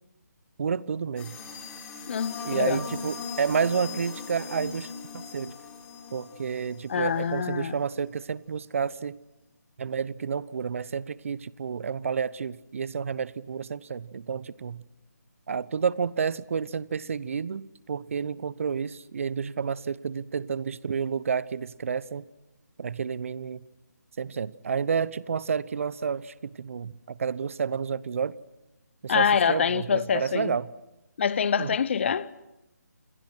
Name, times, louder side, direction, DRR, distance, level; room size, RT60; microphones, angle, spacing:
voice 1, 0.6-1.4 2.4-4.9 5.1-5.5 6.1-9.2 9.8-14.8 15.5-22.2 22.8-23.6 24.2-28.4 29.0-30.7 31.6-31.7, right 6 dB, 50° right, 0.9 m, -30 dB
sound 1, 1.2-7.4, left 6 dB, 10° left, 4.3 m, -40 dB
voice 2, 2.1-2.8 6.9-7.8 29.1-30.6 31.2-32.3, left 7 dB, 40° left, 0.8 m, -25 dB
29.0 x 25.0 x 6.2 m
figure-of-eight pair, 155°, 9 cm